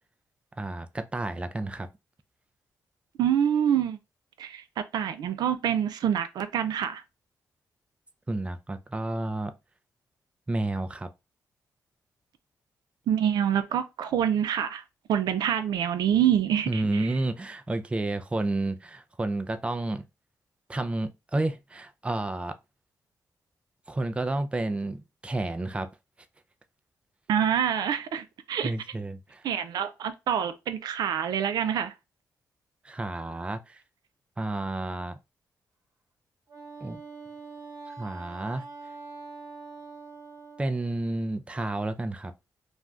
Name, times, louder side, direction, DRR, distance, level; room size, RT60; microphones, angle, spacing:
voice 1, 0.6-1.9 8.3-9.5 10.5-11.1 16.7-20.0 20.7-22.5 23.9-25.9 28.6-29.4 32.8-33.8 34.4-35.2 36.8-37.0 38.0-38.6 40.6-42.3, right 2 dB, 15° right, 0.4 m, -30 dB
voice 2, 3.2-4.0 4.4-7.0 13.1-14.8 15.1-17.1 27.3-28.7 29.4-31.9, right 9 dB, 80° right, 0.4 m, -26 dB
Wind instrument woodwind instrument, 36.5-40.7, right 4 dB, 55° right, 0.9 m, -44 dB
2.5 x 2.3 x 3.2 m
cardioid pair, 75°, 7 cm